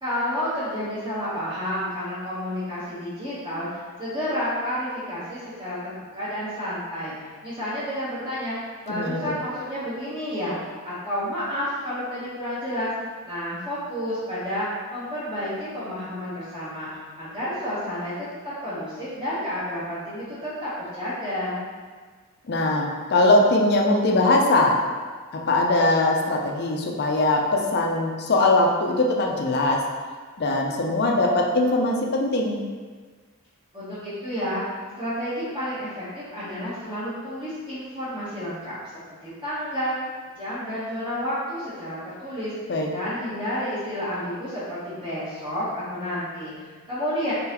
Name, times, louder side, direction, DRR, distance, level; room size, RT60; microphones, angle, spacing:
voice 1, 0.0-7.1 7.4-10.6 10.8-12.9 13.2-16.9 17.2-21.6 33.7-34.6 35.0-38.8 39.2-39.9 40.4-42.5 42.9-47.3, equal, 20° right, -13 dB, 1.0 m, -30 dB
voice 2, 8.9-9.3 22.5-24.8 25.3-29.8 30.4-32.6 42.7-42.9, left 2 dB, 45° left, 0 dB, 0.5 m, -21 dB
3.8 x 3.7 x 2.9 m, 1.5 s
head